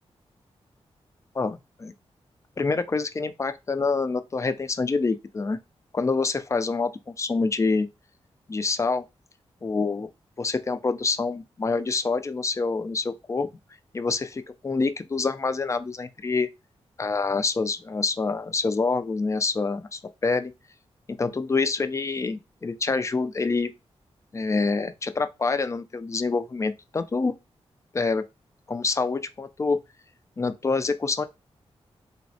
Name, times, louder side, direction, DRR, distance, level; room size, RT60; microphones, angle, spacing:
voice 1, 1.4-1.9 2.6-5.6 5.9-7.9 8.5-9.0 9.6-10.1 10.4-13.5 13.9-16.5 17.0-20.5 21.2-23.7 24.3-27.3 27.9-28.2 28.7-29.8 30.4-31.2, left 4 dB, 30° left, 0.3 m, -26 dB
3.3 x 2.0 x 2.6 m
wide cardioid pair, 85°, 11 cm